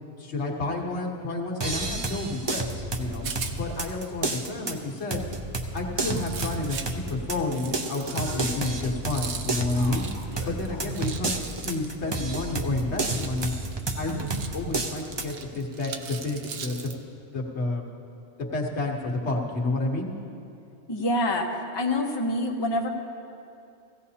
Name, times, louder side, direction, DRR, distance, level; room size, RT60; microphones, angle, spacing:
voice 1, 0.2-3.3 3.6-5.2 5.7-10.1 10.4-13.5 14.0-17.0 17.3-17.8 18.4-20.1, left 2 dB, 75° left, 0 dB, 1.5 m, -30 dB
sound 1, 1.6-15.3, right 2 dB, 30° right, 0.6 m, -31 dB
Rattle, 2.8-17.0, right 6 dB, 75° right, 1.0 m, -42 dB
sound 2, 6.0-6.8 7.5-7.6 7.9-9.0 9.7-10.9, left 4 dB, 90° left, 1.3 m, -43 dB
voice 2, 20.9-22.9, left 1 dB, 25° left, 1 dB, 0.9 m, -26 dB
16.0 x 16.0 x 2.8 m, 2.6 s
omnidirectional pair, 1.2 m